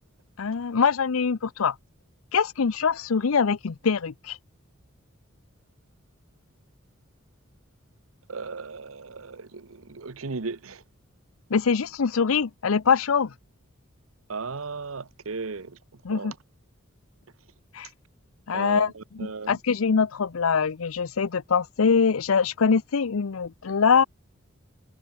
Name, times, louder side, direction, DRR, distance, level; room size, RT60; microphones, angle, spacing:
voice 1, 0.4-1.8 2.3-4.4 11.5-13.3 16.0-16.3 17.7-17.9 18.5-18.9 19.2-24.0, left 5 dB, 80° left, 0.6 m, -23 dB
voice 2, 8.3-10.8 14.3-15.8 16.1-16.3 18.5-19.5, right 4 dB, 80° right, 1.0 m, -36 dB
head